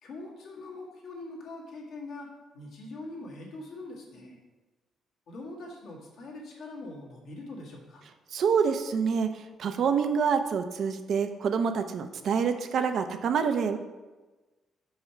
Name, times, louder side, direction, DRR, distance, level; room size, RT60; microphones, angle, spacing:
voice 1, 0.0-2.3 2.5-4.4 5.3-8.1, left 2 dB, 75° left, -3 dB, 1.9 m, -42 dB
voice 2, 8.3-13.8, right 6 dB, 65° right, 8 dB, 0.6 m, -27 dB
5.5 x 4.8 x 5.7 m, 1.2 s
cardioid pair, 90°, 0 cm